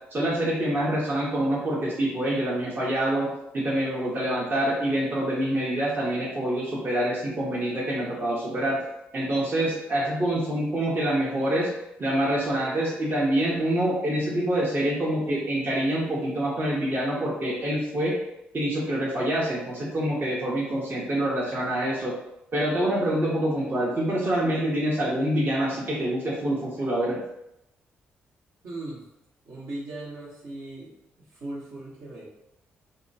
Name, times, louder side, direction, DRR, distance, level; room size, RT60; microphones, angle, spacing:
voice 1, 0.1-3.3 3.5-8.8 9.1-11.7 12.0-18.2 18.5-22.1 22.5-27.2, right 1 dB, 40° right, -5 dB, 0.8 m, -26 dB
voice 2, 28.6-29.0 29.4-30.9 31.3-32.3, right 2 dB, 65° right, -6 dB, 1.0 m, -38 dB
2.8 x 2.2 x 2.7 m, 0.85 s
hypercardioid pair, 45°, 5 cm